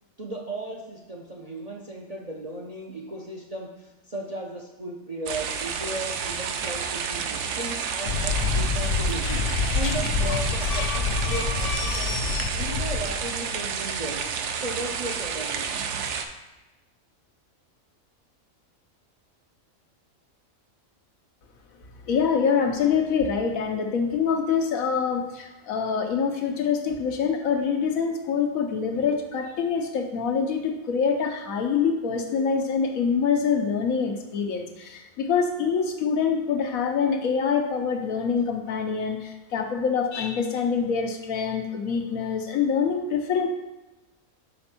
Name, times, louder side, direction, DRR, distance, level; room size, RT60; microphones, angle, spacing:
voice 1, 0.2-9.4 9.7-14.3 14.6-15.8, right 2 dB, 40° right, -1 dB, 0.6 m, -36 dB
sound 1, 5.3-16.3, right 6 dB, 65° right, 0.8 m, -30 dB
sound 2, 8.1-13.4, left 5 dB, 65° left, 0.9 m, -27 dB
voice 2, 22.0-43.5, left 6 dB, 85° left, 4 dB, 1.3 m, -25 dB
5.2 x 4.3 x 5.9 m, 1.1 s
omnidirectional pair, 1.4 m